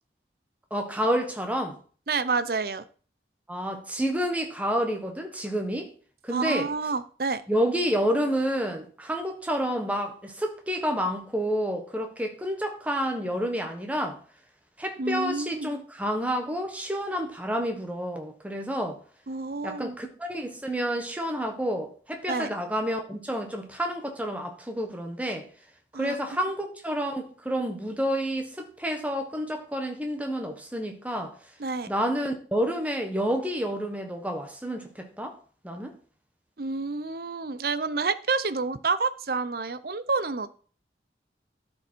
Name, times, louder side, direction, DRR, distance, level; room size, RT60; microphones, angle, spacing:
voice 1, 0.7-1.8 3.5-5.9 6.2-6.7 7.5-14.2 14.8-19.0 19.6-25.5 25.9-31.3 31.9-35.4 35.6-35.9, equal, 10° right, 1.3 m, -29 dB
voice 2, 2.1-2.8 6.3-7.4 15.0-15.7 19.3-20.0 22.3-22.5 25.9-26.2 31.6-31.9 36.6-40.6, right 4 dB, 55° right, 0.6 m, -29 dB
12.0 x 5.3 x 4.5 m
head